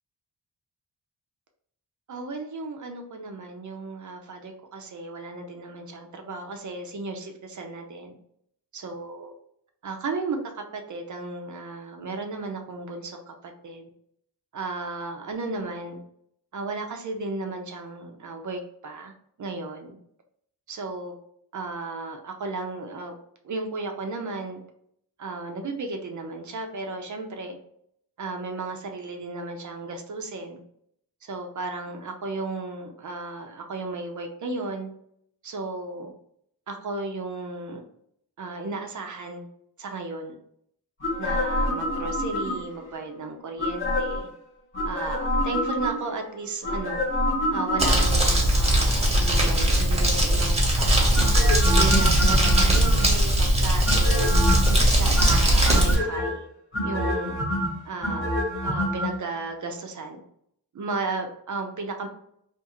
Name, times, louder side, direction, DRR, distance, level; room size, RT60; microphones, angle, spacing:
voice 1, 2.1-8.1 8.7-9.3 9.8-13.9 14.5-16.0 16.5-19.1 19.4-20.0 20.7-21.1 21.5-23.1 23.4-24.6 25.2-27.6 28.2-30.6 31.2-34.9 35.4-36.1 36.7-37.8 38.4-39.5 39.8-40.4 41.2-44.3 44.9-47.0 47.5-51.2 51.7-54.4 55.0-56.5 56.8-57.3 57.8-58.3 58.6-60.2 60.7-62.1, right 3 dB, 50° right, 4 dB, 0.5 m, -34 dB
sound 1, 41.0-42.8 43.6-44.3 44.7-46.2 46.6-48.3 51.1-53.3 53.8-54.8 55.1-56.3 56.7-59.1 59.4-59.5, equal, 30° left, 0.9 m, -27 dB
Crumpling crinkling, 47.8-56.0, right 1 dB, 15° right, 0.9 m, -20 dB
2.5 x 2.4 x 2.9 m, 0.71 s
wide cardioid pair, 105°, 41 cm